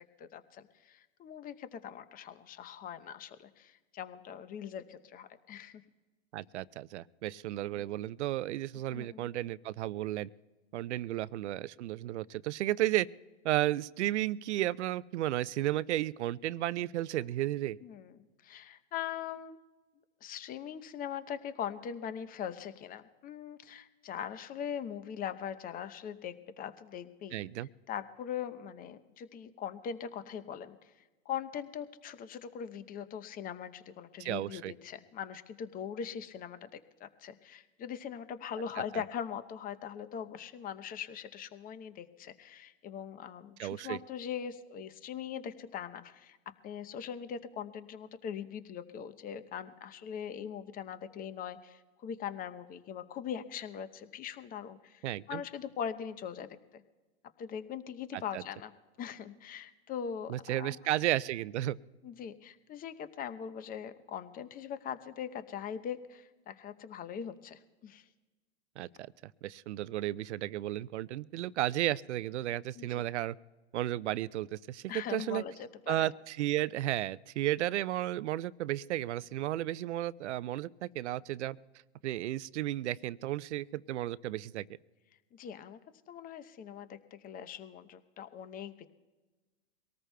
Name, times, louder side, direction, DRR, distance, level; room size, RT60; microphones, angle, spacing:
voice 1, 0.2-5.8 7.7-7.8 8.9-9.3 17.8-19.6 20.2-27.4 27.9-30.8 31.3-46.4 46.6-56.5 56.7-56.8 57.4-58.7 59.0-60.8 62.0-68.0 72.7-73.1 74.9-76.1 85.3-85.8 86.1-88.9, left 8 dB, 25° left, 12 dB, 0.8 m, -41 dB
voice 2, 6.3-10.3 10.7-13.1 13.4-17.8 27.3-27.7 34.2-34.7 38.9-39.0 43.6-44.0 55.0-55.4 58.3-58.4 60.3-61.8 68.8-73.4 73.7-75.4 75.9-81.6 82.0-84.7, right 14 dB, 75° right, 19 dB, 0.5 m, -33 dB
24.0 x 18.5 x 2.3 m, 1.2 s
hypercardioid pair, 115°, 35 cm